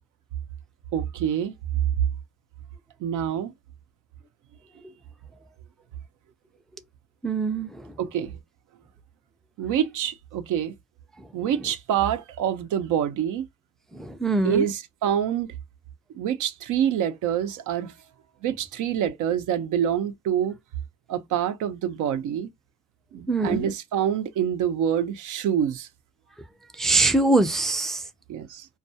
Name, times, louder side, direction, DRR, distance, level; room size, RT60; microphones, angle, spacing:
voice 1, 0.9-1.5 3.0-3.5 8.0-8.4 9.6-10.7 11.3-13.4 14.4-15.5 16.1-17.9 18.4-20.6 21.1-22.5 23.1-25.9 28.3-28.7, right 9 dB, 85° right, 0.6 m, -26 dB
voice 2, 7.2-7.7 14.2-14.6 23.3-23.6 26.8-28.0, right 2 dB, ahead, 0.3 m, -22 dB
2.3 x 2.2 x 2.7 m
cardioid pair, 90°, 30 cm